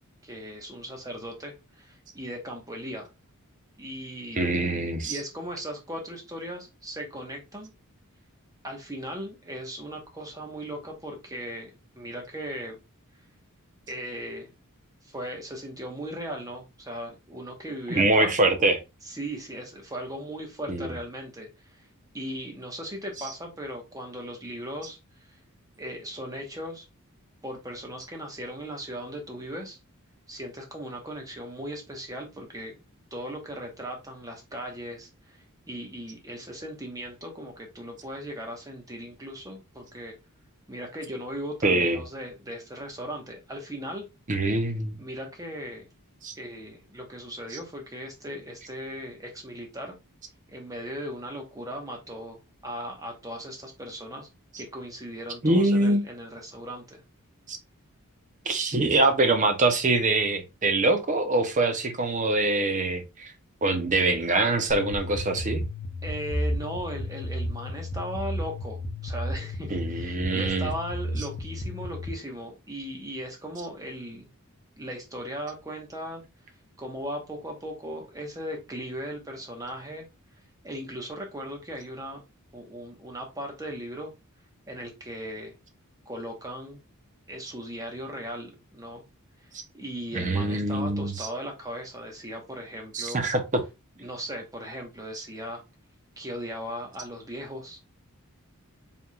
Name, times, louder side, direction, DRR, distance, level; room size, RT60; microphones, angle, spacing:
voice 1, 0.2-3.1 3.8-4.4 5.0-7.7 8.6-11.7 12.0-12.8 13.9-14.5 15.0-18.3 19.0-21.8 22.1-25.0 25.3-25.4 25.8-26.8 27.4-29.8 30.3-32.8 33.1-40.2 40.7-44.0 44.9-45.9 46.4-50.0 50.5-54.3 54.6-57.0 66.0-74.3 74.8-76.2 76.8-80.1 80.6-82.2 82.5-84.1 84.7-85.5 86.1-86.8 87.3-89.0 89.7-93.3 94.0-95.6 96.2-97.9, equal, 15° right, 1.1 m, -38 dB
voice 2, 4.4-5.2 17.9-18.8 20.7-20.9 41.6-42.0 44.3-44.9 46.2-46.3 55.4-56.0 57.5-57.6 58.5-63.3 63.6-65.6 69.7-70.7 89.5-89.6 90.1-91.3 92.9-93.6, right 2 dB, 35° right, 0.7 m, -24 dB
sound 1, 64.7-72.1, left 1 dB, 40° left, 0.7 m, -33 dB
4.6 x 3.5 x 2.3 m
head